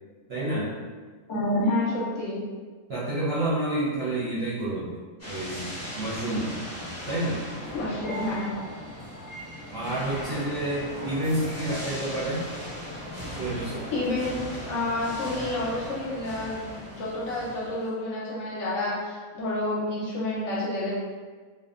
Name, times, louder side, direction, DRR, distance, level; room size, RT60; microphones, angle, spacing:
voice 1, 0.3-0.7 2.9-5.0 5.3-6.6 7.1-7.4 9.7-12.4 13.2-13.9, right 1 dB, 60° right, -9 dB, 0.7 m, -29 dB
voice 2, 1.3-2.4 7.7-8.5 13.5-13.6 13.9-14.4 14.7-16.6 16.9-20.9, left 1 dB, 65° left, -6 dB, 0.9 m, -29 dB
sound 1, 5.2-17.9, left 1 dB, 10° left, 1.1 m, -38 dB
2.6 x 2.1 x 2.4 m, 1.4 s
omnidirectional pair, 1.5 m